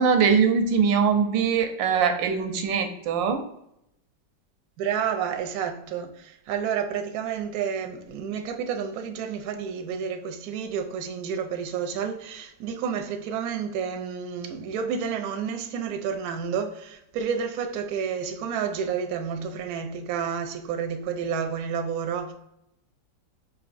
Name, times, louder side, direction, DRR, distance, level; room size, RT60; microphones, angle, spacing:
voice 1, 0.0-3.4, right 6 dB, 85° right, 1.3 m, -22 dB
voice 2, 4.8-22.3, right 7 dB, 70° right, 0.9 m, -30 dB
5.1 x 2.7 x 2.5 m
omnidirectional pair, 2.0 m